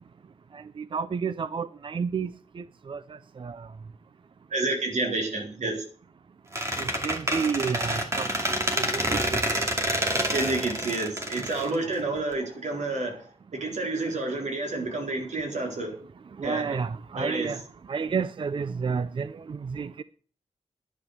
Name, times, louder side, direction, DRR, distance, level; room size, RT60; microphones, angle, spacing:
voice 1, 0.9-2.3 2.9-3.0 3.4-3.6 7.0-8.3 8.8-8.9 9.1-9.2 16.4-17.6 17.9-20.0, right 5 dB, 45° right, 0.5 m, -30 dB
voice 2, 4.5-5.8 10.3-13.2 13.5-16.0 16.4-16.8 17.2-17.5, right 2 dB, 85° right, 4.2 m, -29 dB
Squeak, 6.5-12.3, right 1 dB, 25° right, 2.5 m, -28 dB
11.0 x 10.0 x 6.6 m
wide cardioid pair, 160°, 12 cm